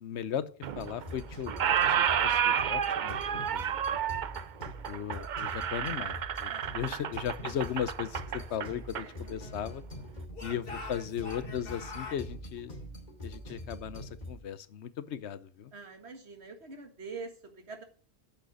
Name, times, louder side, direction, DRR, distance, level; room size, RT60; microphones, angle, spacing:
voice 1, 0.0-4.0 4.6-9.8 10.4-12.8 13.2-15.7, left 9 dB, 85° left, 15 dB, 1.0 m, -37 dB
Squeak, 0.6-1.2 1.5-9.1, right 8 dB, 55° right, 0.6 m, -30 dB
sound 1, 0.7-14.4, equal, 40° left, 2.9 m, -44 dB
voice 2, 6.5-7.1 15.7-17.8, right 4 dB, 75° right, 5 dB, 2.1 m, -45 dB
Speech / Shout, 8.3-9.9 10.3-12.2, left 4 dB, 60° left, 2.1 m, -45 dB
8.4 x 6.3 x 7.8 m, 0.41 s
omnidirectional pair, 1.1 m